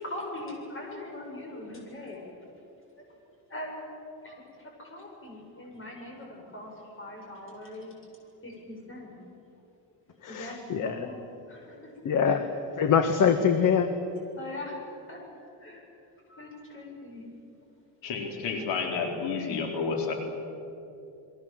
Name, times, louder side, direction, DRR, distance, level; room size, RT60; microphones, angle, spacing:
voice 1, 0.0-2.3 3.5-3.7 4.2-7.9 8.4-9.2 10.3-11.2 11.5-11.9 12.2-12.4 12.8-12.9 14.4-15.8 16.3-17.3, left 1 dB, 30° left, 0 dB, 7.9 m, -41 dB
voice 2, 10.2-11.1 12.0-12.5 12.8-13.9, left 7 dB, 50° left, 8 dB, 1.6 m, -24 dB
voice 3, 18.0-20.1, left 5 dB, 85° left, 2 dB, 4.1 m, -30 dB
29.0 x 22.5 x 7.6 m, 2.8 s
cardioid pair, 145°, 42 cm